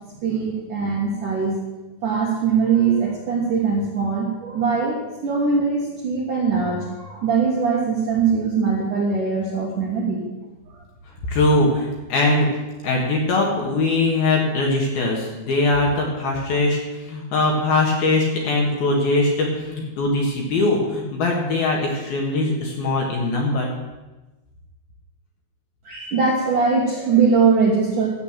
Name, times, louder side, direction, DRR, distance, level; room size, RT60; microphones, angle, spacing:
voice 1, 0.2-1.6 2.0-10.2 10.7-10.8 25.8-28.1, right 5 dB, 65° right, -3 dB, 2.2 m, -21 dB
voice 2, 11.3-12.5 12.8-23.7, left 2 dB, 60° left, 0 dB, 2.9 m, -21 dB
12.5 x 8.3 x 7.4 m, 1.1 s
omnidirectional pair, 5.9 m